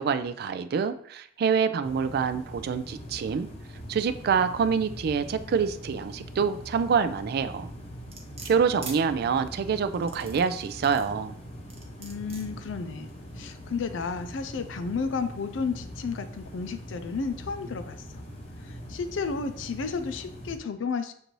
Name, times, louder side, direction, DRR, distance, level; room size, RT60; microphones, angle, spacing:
voice 1, 0.0-3.5 3.9-7.7 8.4-11.3, right 6 dB, 55° right, 11 dB, 0.3 m, -26 dB
sound 1, 1.8-20.6, equal, 35° left, 0.8 m, -42 dB
sound 2, 8.1-9.0 9.9-11.1 11.7-12.5 13.1-13.2, right 4 dB, 35° right, 0.7 m, -42 dB
voice 2, 12.0-18.2 18.6-21.1, left 5 dB, 85° left, 10 dB, 0.4 m, -32 dB
6.6 x 2.6 x 3.0 m, 0.65 s
head